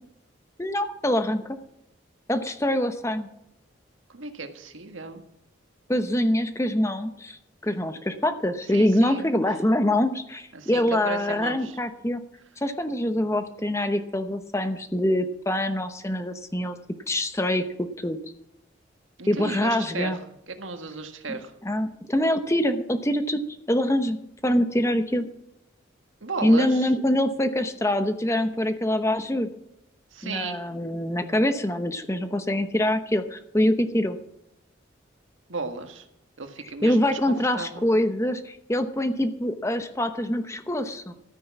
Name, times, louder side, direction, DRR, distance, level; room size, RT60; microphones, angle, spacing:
voice 1, 0.6-1.6 2.3-3.3 5.9-12.2 12.6-16.8 17.1-18.3 19.3-20.2 21.3-23.4 23.7-24.2 24.4-25.3 26.4-29.5 30.2-34.2 36.8-41.1, left 1 dB, 15° left, 8 dB, 0.9 m, -24 dB
voice 2, 4.1-5.2 8.7-9.4 10.5-11.8 19.2-20.2 20.5-21.5 26.2-26.9 30.1-30.6 35.5-36.0 36.4-37.8, right 3 dB, 85° right, 6 dB, 1.6 m, -35 dB
13.0 x 9.8 x 6.0 m, 0.80 s
head